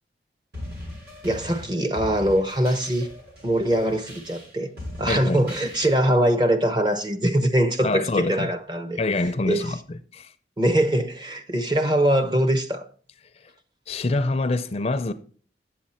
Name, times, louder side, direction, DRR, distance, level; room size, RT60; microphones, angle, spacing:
sound 1, 0.5-6.2, left 1 dB, 65° right, 4.6 m, -39 dB
voice 1, 1.2-3.1 3.4-4.7 5.0-9.0 9.5-9.6 10.6-12.9, right 1 dB, 25° right, 0.7 m, -22 dB
voice 2, 5.1-5.4 7.8-8.5 9.0-9.8 10.1-10.3 13.3-13.5 13.9-15.1, left 2 dB, 35° left, 0.5 m, -25 dB
8.5 x 7.4 x 4.2 m
head